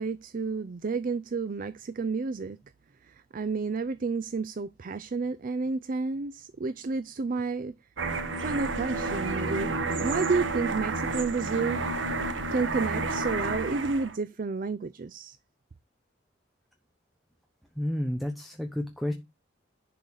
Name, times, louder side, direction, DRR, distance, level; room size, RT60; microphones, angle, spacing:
voice 1, 0.0-2.6 3.0-7.8 8.4-11.8 12.5-15.4, right 4 dB, 45° right, 0.4 m, -31 dB
sound 1, 8.0-14.2, right 3 dB, 85° right, 1.2 m, -30 dB
voice 2, 17.8-19.1, left 1 dB, ahead, 1.0 m, -31 dB
10.5 x 4.0 x 6.3 m
head